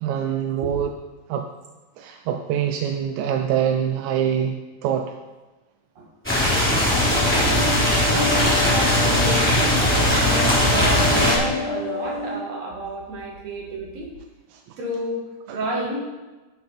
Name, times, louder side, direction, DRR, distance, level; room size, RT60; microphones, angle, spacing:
voice 1, 0.0-0.9 1.3-1.4 2.0-5.1 14.5-14.6 15.5-15.6, right 9 dB, 75° right, 4 dB, 1.8 m, -24 dB
sound 1, 6.2-11.4, left 1 dB, 5° left, 3.4 m, -19 dB
sound 2, 6.9-12.3, left 2 dB, 35° left, 3.9 m, -29 dB
voice 2, 8.1-14.1 14.8-16.0, right 1 dB, 60° right, -2 dB, 3.0 m, -30 dB
12.0 x 5.9 x 5.1 m, 1.2 s
omnidirectional pair, 3.6 m